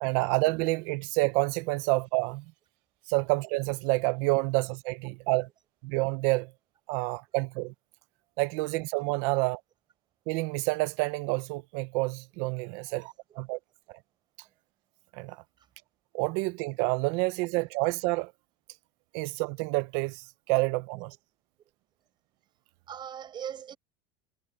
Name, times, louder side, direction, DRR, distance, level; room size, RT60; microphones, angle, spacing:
voice 1, 0.0-2.4 3.1-5.5 5.8-6.5 6.9-7.7 8.4-9.6 10.3-13.6 15.1-15.4 16.1-18.3 19.1-21.1, right 24 dB, 70° right, 0.7 m, -28 dB
voice 2, 12.9-13.4 13.9-14.0 15.6-15.7 19.2-19.3 21.0-21.2 22.9-23.8, right 9 dB, 35° right, 6.3 m, -42 dB
supercardioid pair, 120°, 13 cm